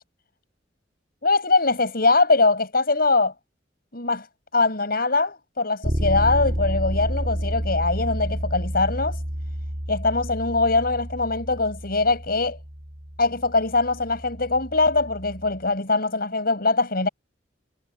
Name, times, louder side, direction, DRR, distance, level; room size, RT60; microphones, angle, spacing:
voice 1, 1.2-3.3 3.9-4.3 4.5-9.2 9.9-12.6 13.2-17.1, left 3 dB, 55° left, 7.1 m, -22 dB
Bass guitar, 5.8-15.6, equal, 40° right, 2.5 m, -30 dB
head